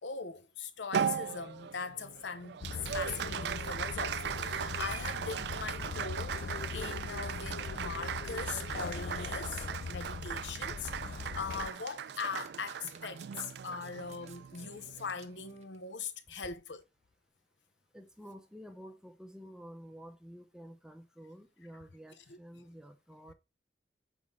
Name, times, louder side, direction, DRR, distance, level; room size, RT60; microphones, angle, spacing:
voice 1, 0.0-2.6 2.9-16.8 22.2-22.7, left 5 dB, 90° left, 0.8 m, -41 dB
Applause, 0.9-15.6, right 8 dB, 70° right, 0.3 m, -38 dB
sound 1, 2.6-11.7, left 4 dB, 50° left, 0.3 m, -41 dB
Domestic sounds home sounds, 11.8-15.8 16.6-16.8, right 7 dB, 35° right, 0.7 m, -58 dB
voice 2, 17.9-23.3, equal, 5° right, 0.6 m, -50 dB
7.3 x 4.2 x 3.6 m
head